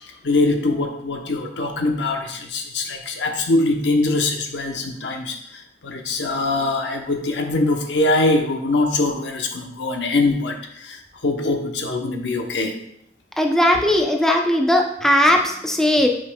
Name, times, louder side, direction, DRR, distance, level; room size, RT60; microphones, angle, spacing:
voice 1, 0.2-12.7, left 2 dB, 85° left, 4 dB, 0.8 m, -23 dB
voice 2, 13.4-16.1, left 1 dB, 5° left, 2 dB, 0.6 m, -18 dB
8.5 x 5.4 x 2.3 m, 0.73 s
head